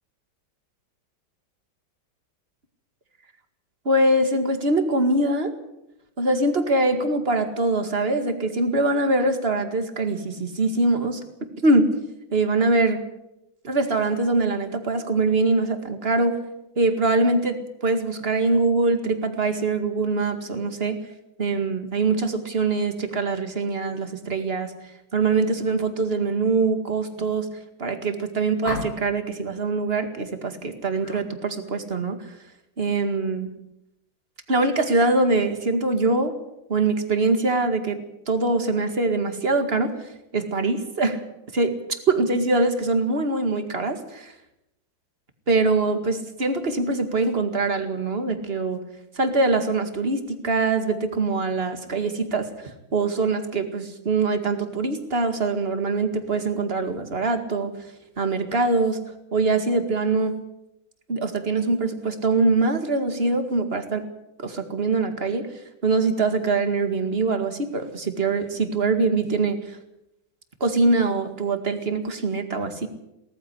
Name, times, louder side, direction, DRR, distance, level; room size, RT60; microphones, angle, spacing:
voice 1, 3.9-5.5 6.2-11.2 11.6-11.9 12.3-13.0 13.6-16.3 16.8-17.6 17.8-21.0 21.4-24.7 25.1-27.5 27.8-32.2 32.8-33.5 34.5-36.3 36.7-38.0 38.3-39.9 40.3-41.2 41.5-41.8 42.1-44.3 45.5-48.8 49.2-57.7 58.2-59.0 59.3-60.3 61.1-64.0 64.4-65.5 65.8-69.8 70.6-72.9, right 3 dB, 30° right, 7 dB, 2.2 m, -23 dB
sound 1, 28.6-29.3 31.0-31.3 31.7-32.0, left 4 dB, 45° left, 2.2 m, -34 dB
18.5 x 14.5 x 10.0 m, 0.88 s
omnidirectional pair, 2.0 m